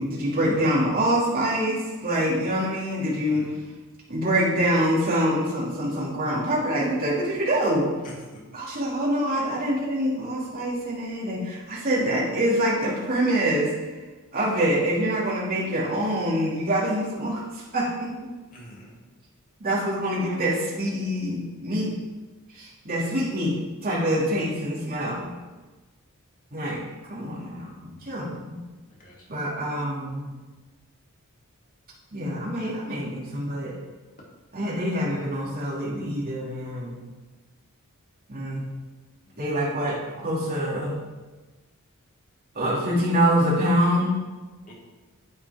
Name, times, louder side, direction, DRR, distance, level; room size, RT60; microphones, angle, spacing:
voice 1, 0.0-3.5 4.1-7.9 8.5-13.7 14.3-18.3 19.6-21.9 22.5-23.6 23.8-25.3 26.5-28.6 29.3-30.3 32.1-33.8 34.5-37.0 38.3-38.6 39.4-40.9 42.5-44.2, equal, 40° right, -6 dB, 2.5 m, -25 dB
voice 2, 3.3-3.7 8.0-8.4 14.5-14.7 18.5-19.0 29.0-29.2 39.3-39.4 44.7-44.8, left 1 dB, 40° left, -4 dB, 2.6 m, -45 dB
9.6 x 8.3 x 3.6 m, 1.2 s
head